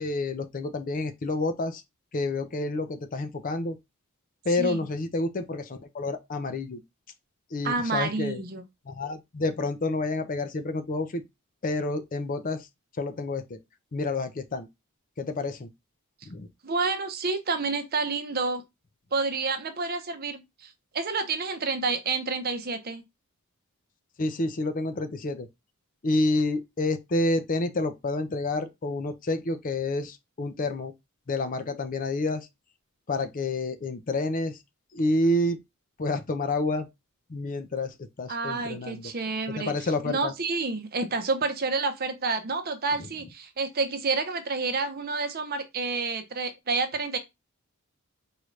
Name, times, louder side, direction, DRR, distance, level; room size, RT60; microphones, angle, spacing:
voice 1, 0.0-1.8 2.1-3.8 4.5-6.8 7.5-8.4 8.9-11.2 11.6-12.6 13.0-13.6 13.9-14.7 15.2-15.7 16.3-16.5 24.2-25.5 26.0-30.9 31.3-32.5 33.1-34.6 34.9-35.6 36.0-36.9 37.3-39.1 39.6-40.3, left 2 dB, 40° left, 0.5 m, -29 dB
voice 2, 4.5-4.9 7.6-8.6 16.6-18.6 19.1-23.0 38.3-47.2, right 4 dB, 45° right, 0.7 m, -29 dB
4.7 x 2.6 x 3.1 m
head